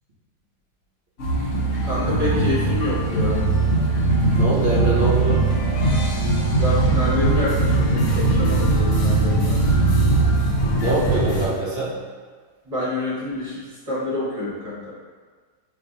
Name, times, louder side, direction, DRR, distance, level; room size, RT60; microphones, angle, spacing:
sound 1, 1.2-11.5, right 2 dB, 60° left, 0.9 m, -20 dB
voice 1, 1.8-3.4 6.6-9.6 12.7-14.9, left 2 dB, 30° right, -8 dB, 0.9 m, -27 dB
voice 2, 4.3-5.4 10.7-11.9, right 2 dB, 55° right, -6 dB, 0.7 m, -23 dB
4.5 x 2.5 x 2.6 m, 1.5 s
omnidirectional pair, 1.6 m